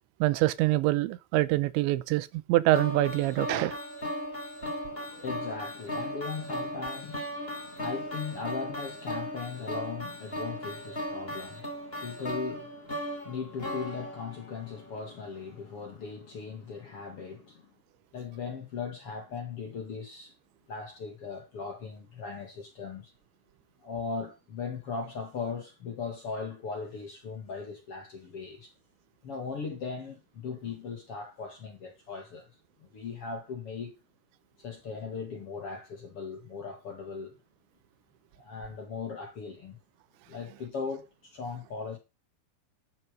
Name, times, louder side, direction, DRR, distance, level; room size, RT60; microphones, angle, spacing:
voice 1, 0.2-3.8, right 17 dB, 90° right, 3.2 m, -25 dB
sound 1, 2.7-14.9, equal, 15° left, 2.6 m, -37 dB
voice 2, 4.6-17.7 18.1-20.3 20.7-23.1 23.8-28.7 29.2-32.5 32.9-33.9 34.6-37.4 38.4-39.8 40.3-42.0, left 5 dB, 45° left, 2.0 m, -38 dB
12.5 x 7.7 x 5.3 m
omnidirectional pair, 5.1 m